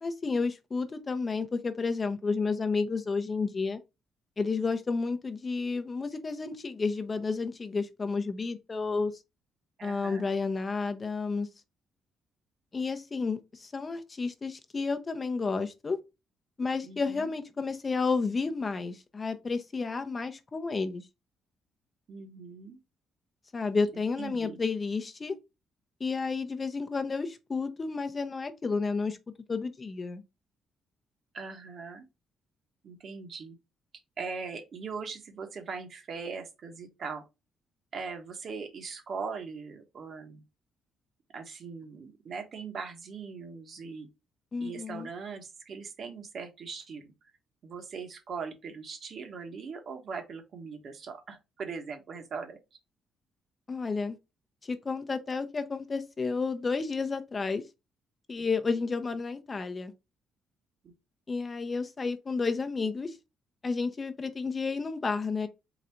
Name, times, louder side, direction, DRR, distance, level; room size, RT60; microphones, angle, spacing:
voice 1, 0.0-3.8 4.4-9.1 9.8-11.5 12.7-16.0 16.6-21.0 23.5-25.3 26.0-29.2 29.5-30.2 44.5-45.1 53.7-54.2 54.6-57.6 58.3-59.9 61.3-63.1 63.6-65.5, left 4 dB, 30° left, 0.6 m, -31 dB
voice 2, 9.8-10.3 16.8-17.3 22.1-22.8 23.9-24.6 31.3-32.1 32.8-33.6 34.2-37.2 37.9-40.4 41.3-44.1 44.6-47.1 47.6-52.6 60.8-60.9, right 5 dB, 55° right, 1.1 m, -40 dB
4.0 x 2.4 x 4.3 m
cardioid pair, 90°, 0 cm